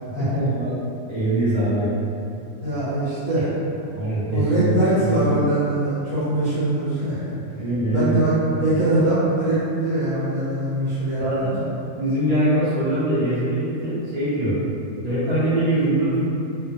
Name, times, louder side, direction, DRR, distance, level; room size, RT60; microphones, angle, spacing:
voice 1, 0.2-0.7 1.1-1.9 3.9-5.2 7.5-8.8 11.1-14.5 15.0-16.2, right 1 dB, 35° right, -12 dB, 0.7 m, -23 dB
voice 2, 2.6-3.5 4.3-7.3 7.9-11.6, right 1 dB, 60° right, -12 dB, 1.3 m, -22 dB
2.6 x 2.0 x 2.7 m, 2.8 s
omnidirectional pair, 1.6 m